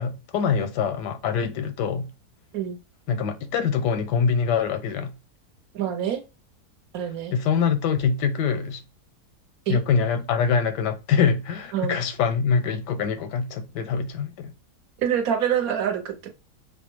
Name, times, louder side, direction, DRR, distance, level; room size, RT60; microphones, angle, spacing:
voice 1, 0.0-2.1 3.1-5.1 7.3-8.8 9.7-14.5, left 6 dB, 85° left, 1.2 m, -24 dB
voice 2, 5.7-6.2 6.9-7.4 9.7-9.8 11.7-12.0 15.0-16.3, right 9 dB, 65° right, 1.0 m, -26 dB
5.8 x 2.1 x 3.0 m
omnidirectional pair, 1.8 m